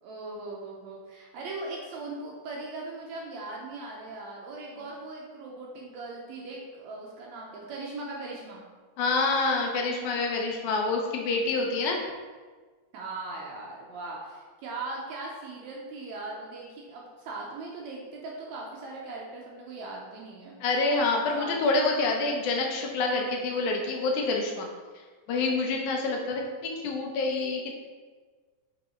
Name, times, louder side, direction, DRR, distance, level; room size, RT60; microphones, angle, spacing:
voice 1, 0.0-8.6 12.9-20.6 21.4-21.5, right 2 dB, 70° right, -2 dB, 1.8 m, -39 dB
voice 2, 9.0-12.0 20.6-24.7 25.3-27.8, left 3 dB, 75° left, 1 dB, 2.1 m, -27 dB
5.5 x 5.3 x 4.3 m, 1.4 s
omnidirectional pair, 3.8 m